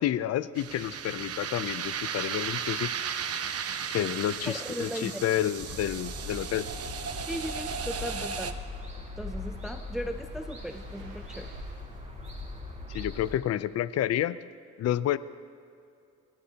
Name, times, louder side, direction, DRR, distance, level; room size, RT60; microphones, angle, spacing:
voice 1, 0.0-2.9 3.9-6.7 12.9-14.4 14.8-15.2, left 12 dB, 55° left, 16 dB, 0.5 m, -29 dB
sound 1, 0.6-8.5, right 7 dB, 50° right, 1.0 m, -35 dB
sound 2, 2.9-11.8, right 3 dB, 80° right, 4.9 m, -55 dB
voice 2, 4.5-5.2 7.3-8.6 9.2-11.5, equal, ahead, 7 dB, 0.5 m, -37 dB
sound 3, 5.6-13.4, left 2 dB, 25° right, 5.2 m, -40 dB
25.5 x 18.5 x 2.9 m, 2.5 s
cardioid pair, 90°, 30 cm